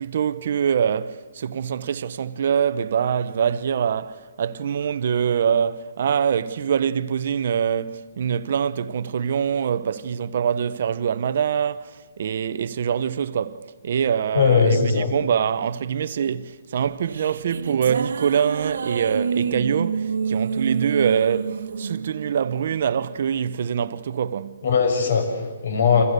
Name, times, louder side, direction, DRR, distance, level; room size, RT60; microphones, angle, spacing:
voice 1, 0.0-24.6, right 8 dB, 50° right, 0.9 m, -24 dB
voice 2, 14.3-15.1 24.6-26.0, left 5 dB, 65° left, 7.2 m, -19 dB
sound 1, 16.9-23.4, right 5 dB, 75° right, 1.5 m, -28 dB
29.5 x 27.5 x 6.8 m
hypercardioid pair, 175°, 0 cm